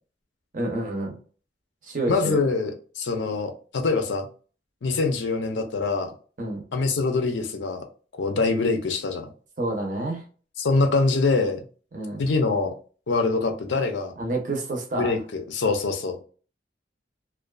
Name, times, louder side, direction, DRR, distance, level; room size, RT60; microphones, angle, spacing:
voice 1, 0.5-1.2 1.8-2.5 6.4-6.6 9.6-10.2 11.9-12.3 14.2-15.2, right 2 dB, 45° right, 0.7 m, -28 dB
voice 2, 2.1-2.7 3.0-4.3 4.8-6.1 6.7-7.8 8.1-9.3 10.6-11.6 12.2-12.7 13.1-14.1 14.9-16.2, left 3 dB, 75° left, 0.5 m, -24 dB
2.5 x 2.3 x 2.2 m
head